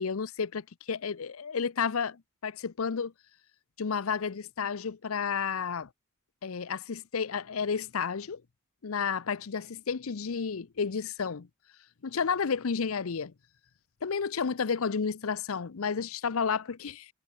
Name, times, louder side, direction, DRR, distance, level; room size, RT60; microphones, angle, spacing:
voice 1, 0.0-3.1 3.8-5.9 6.4-8.4 8.8-11.5 12.0-13.3 14.0-17.1, left 6 dB, 80° left, 0.6 m, -31 dB
head